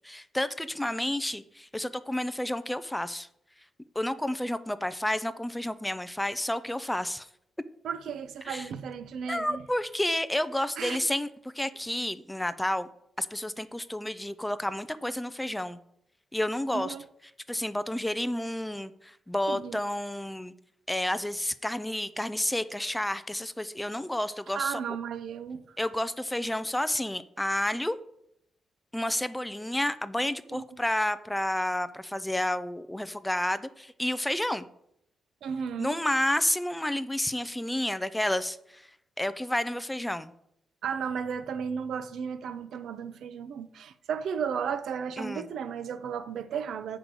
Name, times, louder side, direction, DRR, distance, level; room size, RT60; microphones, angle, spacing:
voice 1, 0.0-3.3 4.0-7.3 8.5-8.7 9.3-11.3 11.5-12.9 13.2-15.8 16.3-17.0 17.5-20.5 20.9-25.0 25.8-28.0 28.9-34.7 35.8-38.9 39.2-40.3 45.2-45.5, left 1 dB, 5° left, 0.3 m, -30 dB
voice 2, 7.8-9.7 10.8-11.0 16.7-17.0 19.5-19.8 24.5-25.8 30.5-30.6 35.4-36.0 40.8-47.0, right 7 dB, 65° right, 0.6 m, -34 dB
8.0 x 5.1 x 6.1 m
wide cardioid pair, 170°, 0 cm